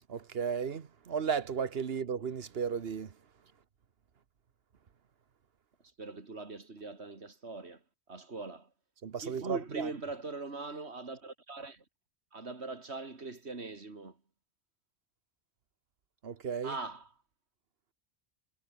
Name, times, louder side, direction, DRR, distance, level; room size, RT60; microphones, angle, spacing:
voice 1, 0.1-3.1 9.0-9.9 16.2-16.7, right 6 dB, 70° right, 1.3 m, -34 dB
voice 2, 6.0-7.8 8.1-8.7 9.2-11.8 12.3-14.2 16.6-17.1, right 3 dB, 90° right, 3.1 m, -41 dB
omnidirectional pair, 1.1 m